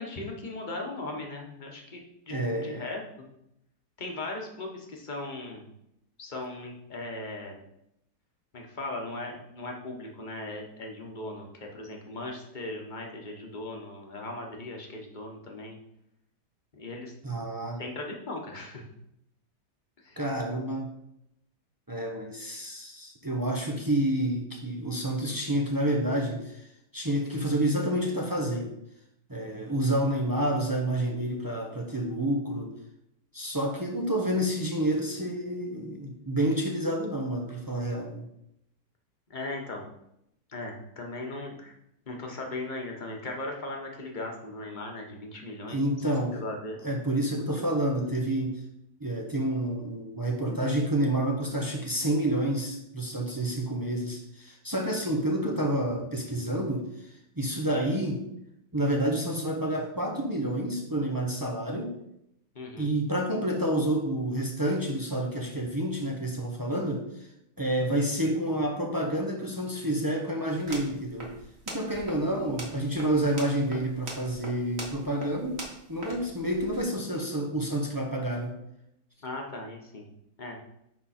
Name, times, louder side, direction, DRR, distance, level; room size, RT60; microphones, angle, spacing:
voice 1, 0.0-2.4 2.6-3.3 4.0-5.7 6.2-7.6 8.5-11.5 11.7-15.8 16.7-17.1 17.8-18.8 20.0-20.2 39.3-39.9 40.5-41.7 42.1-45.8 46.3-46.8 62.5-63.0 72.2-72.6 79.2-80.1 80.4-80.6, left 2 dB, 30° left, 1 dB, 1.3 m, -38 dB
voice 2, 2.3-2.9 17.2-17.8 20.2-20.9 21.9-26.7 26.9-28.7 29.3-32.7 33.3-38.3 45.7-46.4 46.8-48.6 49.0-58.3 58.7-62.0 62.8-67.3 67.6-71.3 71.7-75.6 75.9-78.6, right 1 dB, 20° right, 1 dB, 0.5 m, -29 dB
sound 1, 70.5-76.8, right 1 dB, 40° right, 1.8 m, -43 dB
10.5 x 3.8 x 4.4 m, 0.79 s
omnidirectional pair, 1.9 m